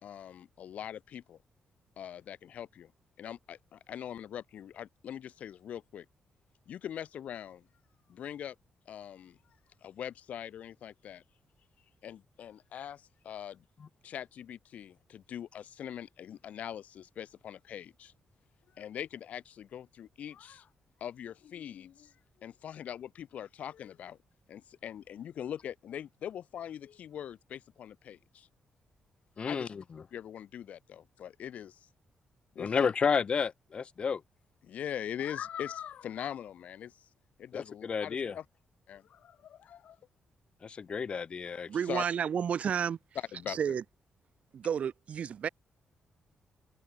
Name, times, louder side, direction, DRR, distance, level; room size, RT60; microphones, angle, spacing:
voice 1, 0.0-1.4 2.0-2.9 3.2-6.0 6.7-7.7 8.1-8.5 8.9-9.4 9.8-11.2 12.0-13.6 14.0-18.1 18.7-20.7 21.0-22.1 22.4-24.2 24.5-28.5 29.4-29.7 30.1-31.8 32.5-32.9 34.6-36.9 37.4-38.4 38.9-40.0 41.8-42.0 43.3-43.7, left 9 dB, 75° left, 1.6 m, -42 dB
voice 2, 29.4-30.0 32.6-34.2 37.5-38.4 40.6-41.7, left 6 dB, 45° left, 0.5 m, -31 dB
voice 3, 41.7-43.0 43.5-43.8 44.5-45.5, right 8 dB, 60° right, 1.3 m, -31 dB
open air
cardioid pair, 75°, 2 cm